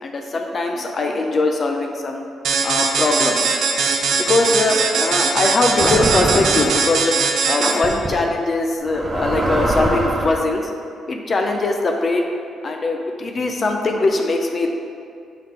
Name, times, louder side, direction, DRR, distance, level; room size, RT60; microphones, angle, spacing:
voice 1, 0.0-2.3 2.6-3.5 4.2-7.1 7.5-10.7 11.1-12.3 12.6-14.7, left 2 dB, 40° left, 2 dB, 0.5 m, -21 dB
sound 1, 2.4-8.0, right 5 dB, 75° right, 0.5 m, -20 dB
sound 2, 5.8-6.8 7.8-8.1 8.9-10.4, right 1 dB, 20° right, 0.8 m, -22 dB
6.5 x 3.9 x 4.3 m, 2.4 s
cardioid pair, 90°, 0 cm